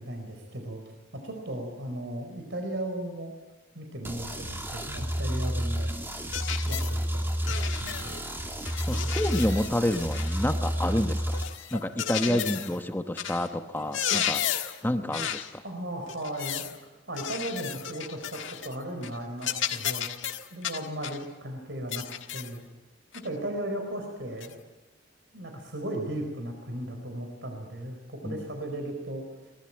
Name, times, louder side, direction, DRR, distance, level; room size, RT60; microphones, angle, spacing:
voice 1, 0.0-3.3 3.7-5.9 6.6-8.0 8.9-9.1 12.2-12.4 15.6-22.1 22.3-22.6 23.1-24.6 25.3-29.5, right 1 dB, 65° right, 3 dB, 4.5 m, -36 dB
sound 1, 4.0-11.4, equal, 10° right, 2.6 m, -30 dB
sound 2, 6.3-7.0 7.5-8.2 8.6-10.5 11.3-12.8 13.2-13.5 13.8-14.8 15.1-15.5 16.1-16.8 17.2-18.8 19.0-19.2 19.4-21.2 21.9-22.6 23.1-23.3 24.4-24.5, left 9 dB, 90° left, 1.6 m, -33 dB
voice 2, 8.9-11.4 11.7-14.5 14.8-15.6 28.2-28.4, left 1 dB, 10° left, 7 dB, 1.1 m, -29 dB
22.5 x 20.5 x 8.9 m, 1.1 s
head